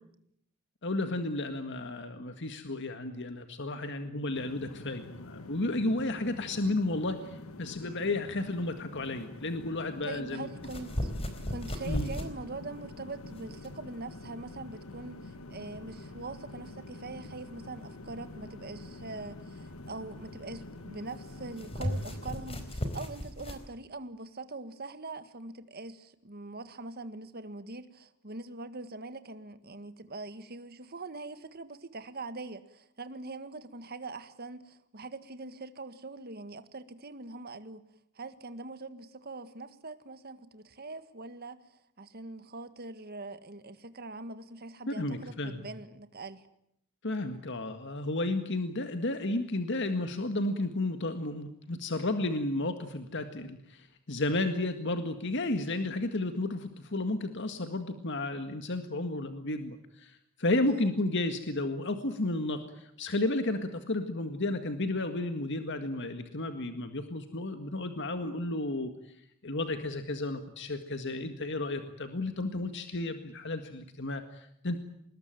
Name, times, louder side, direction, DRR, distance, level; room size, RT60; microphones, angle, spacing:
voice 1, 0.8-10.5 11.9-12.1 44.9-45.6 47.0-68.9 69.4-74.8, left 2 dB, 55° left, 8 dB, 1.9 m, -32 dB
sound 1, 4.3-22.9, left 2 dB, 90° left, 1.5 m, -47 dB
voice 2, 10.0-11.1 11.5-37.8 38.1-41.6 42.0-46.4 60.7-60.9, right 3 dB, 45° right, 11 dB, 1.8 m, -43 dB
sound 2, 10.6-23.6, equal, 30° left, 4.3 m, -38 dB
26.0 x 20.5 x 9.1 m, 0.75 s
head